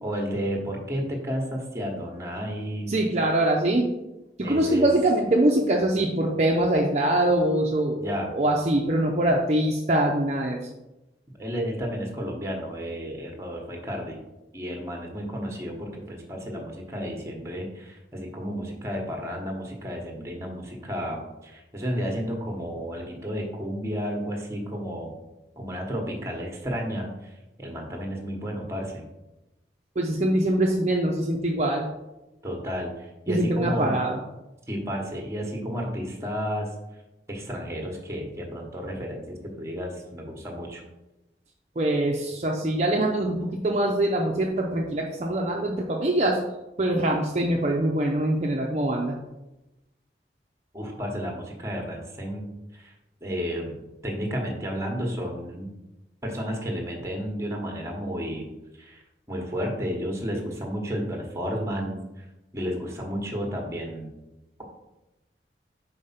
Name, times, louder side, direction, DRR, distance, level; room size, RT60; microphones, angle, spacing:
voice 1, 0.0-3.0 4.4-4.9 8.0-8.3 11.4-14.2 14.5-25.1 25.6-29.0 32.4-34.0 34.7-36.7 37.3-40.8 50.7-52.9 53.2-55.7 56.2-58.5 58.8-62.2 62.5-64.1, equal, 15° right, 1 dB, 1.2 m, -32 dB
voice 2, 2.9-3.9 4.4-10.6 30.0-31.9 33.3-34.2 41.8-46.4 46.8-49.2, right 1 dB, 40° right, -1 dB, 0.6 m, -23 dB
5.1 x 4.3 x 5.7 m, 0.99 s
head